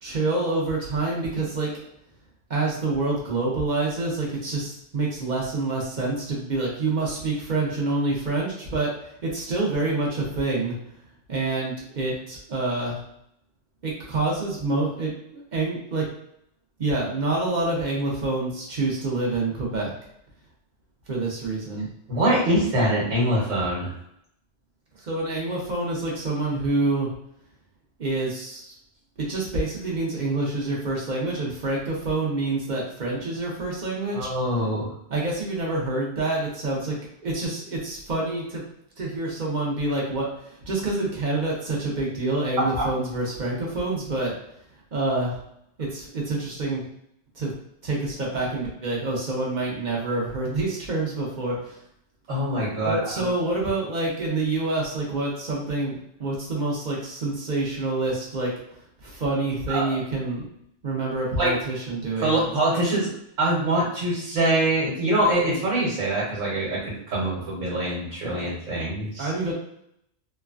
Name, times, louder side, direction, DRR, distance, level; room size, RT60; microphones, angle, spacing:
voice 1, 0.0-1.7 2.5-8.9 9.2-10.8 11.3-13.0 13.8-16.0 16.8-19.9 21.1-21.9 25.0-27.1 28.0-28.7 29.2-34.3 35.1-37.0 37.2-38.6 39.0-44.3 44.9-45.4 45.8-46.8 47.4-47.5 47.8-51.8 52.8-55.9 56.2-58.5 59.0-60.4 60.8-62.3 69.2-69.5, right 2 dB, 45° right, -3 dB, 0.7 m, -27 dB
voice 2, 22.1-23.9 34.1-34.9 42.6-42.8 52.3-53.3 59.7-60.0 61.4-61.5 62.2-63.1 63.4-69.3, right 1 dB, 85° right, -5 dB, 1.3 m, -24 dB
3.1 x 2.2 x 2.4 m, 0.75 s
omnidirectional pair, 1.3 m